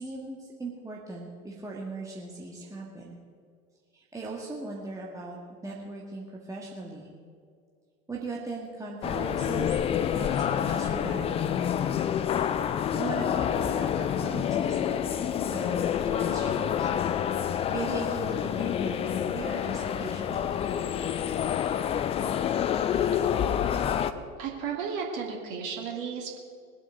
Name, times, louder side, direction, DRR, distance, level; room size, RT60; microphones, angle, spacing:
voice 1, 0.0-3.2 3.9-5.4 5.6-7.1 8.1-12.1 12.9-16.9 17.7-20.6, right 3 dB, 10° right, -3 dB, 1.7 m, -38 dB
sound 1, 9.0-24.1, left 9 dB, 15° left, 0.4 m, -28 dB
voice 2, 24.4-26.4, right 6 dB, 45° right, 0 dB, 2.6 m, -34 dB
21.0 x 8.1 x 5.1 m, 2.1 s
figure-of-eight pair, 80°, 42 cm